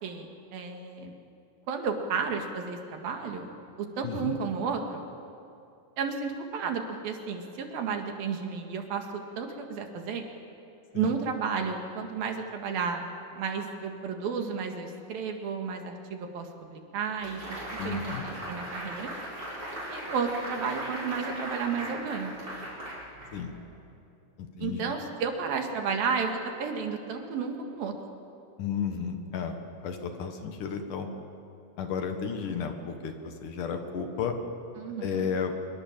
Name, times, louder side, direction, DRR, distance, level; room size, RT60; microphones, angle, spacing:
voice 1, 0.0-1.1 1.7-3.5 3.8-5.0 6.0-10.3 10.9-13.0 13.3-17.6 17.8-19.1 19.9-22.3 24.6-27.9 34.8-35.3, right 5 dB, 80° right, 4 dB, 3.8 m, -32 dB
voice 2, 4.0-4.4 10.9-11.1 17.8-18.3 23.3-23.5 24.4-24.9 28.6-29.5 29.8-31.1 31.8-34.4 35.0-35.5, left 6 dB, 65° left, 5 dB, 3.0 m, -33 dB
sound 1, 17.2-23.7, right 1 dB, 25° right, 6.3 m, -38 dB
25.0 x 22.5 x 7.5 m, 2.7 s
omnidirectional pair, 4.2 m